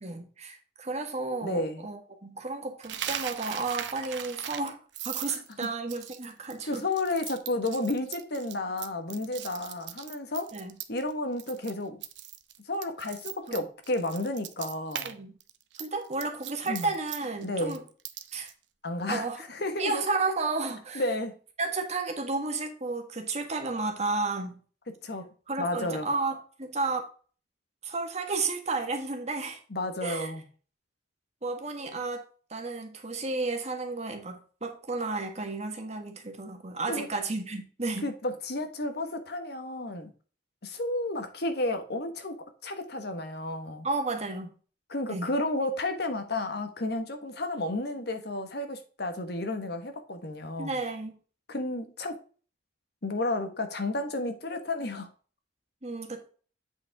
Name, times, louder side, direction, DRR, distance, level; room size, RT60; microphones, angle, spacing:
voice 1, 0.0-4.8 5.0-6.8 10.5-10.7 13.5-13.6 15.0-15.3 15.8-17.8 18.3-18.5 19.1-19.4 19.8-21.0 21.6-24.6 25.5-27.1 27.8-29.6 30.0-30.3 31.4-38.1 43.8-44.5 45.1-45.3 50.6-51.2 55.8-56.3, right 3 dB, 40° right, 1.5 m, -32 dB
voice 2, 1.4-1.9 6.7-10.5 10.9-12.0 12.7-15.2 16.7-16.9 17.4-17.8 18.8-20.0 20.9-21.4 25.0-25.3 25.6-26.1 29.7-30.4 36.9-37.1 38.0-40.1 40.6-42.3 42.6-43.9 44.9-50.7 51.5-52.2 53.0-55.1, left 2 dB, 60° left, 1.3 m, -32 dB
Coin (dropping), 2.8-11.1 11.4-11.7 12.0-15.1 15.4-18.5, right 10 dB, 80° right, 0.8 m, -39 dB
8.4 x 5.2 x 3.5 m
head